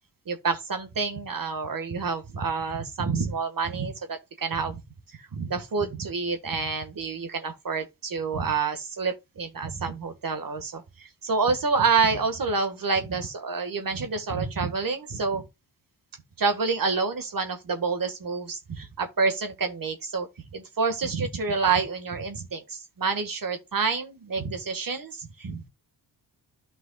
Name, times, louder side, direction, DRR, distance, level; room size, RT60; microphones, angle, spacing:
voice 1, 0.2-4.8 5.1-15.4 16.4-25.7, right 4 dB, 50° right, 1.7 m, -28 dB
11.5 x 5.6 x 2.4 m
cardioid pair, 65°, 43 cm